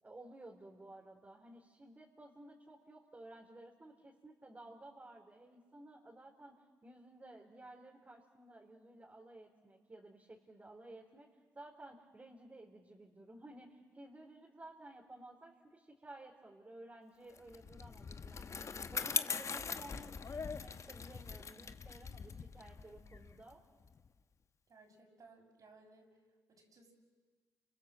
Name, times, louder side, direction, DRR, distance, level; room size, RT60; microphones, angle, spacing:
voice 1, 0.0-11.3 11.5-23.6, right 1 dB, 25° right, -1 dB, 3.8 m, -55 dB
Bicycle, 17.4-24.1, left 5 dB, 45° left, 1.1 m, -42 dB
voice 2, 24.7-26.1 26.5-26.9, right 3 dB, 55° right, 2 dB, 6.6 m, -61 dB
30.0 x 26.5 x 7.5 m, 1.4 s
supercardioid pair, 60°, 7 cm